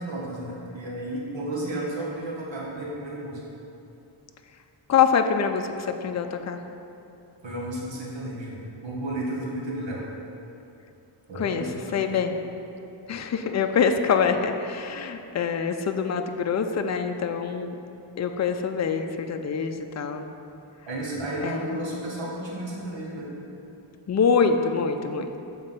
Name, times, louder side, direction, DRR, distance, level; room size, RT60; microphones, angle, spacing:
voice 1, 0.0-3.4 7.4-10.0 11.3-12.1 20.9-23.3, right 1 dB, 70° right, -4 dB, 1.6 m, -33 dB
voice 2, 4.9-6.6 11.4-11.6 11.9-12.3 13.1-17.8 18.2-20.3 21.4-21.8 24.1-25.3, left 6 dB, 35° left, 6 dB, 0.4 m, -25 dB
7.2 x 3.9 x 5.6 m, 2.8 s
wide cardioid pair, 85°, 47 cm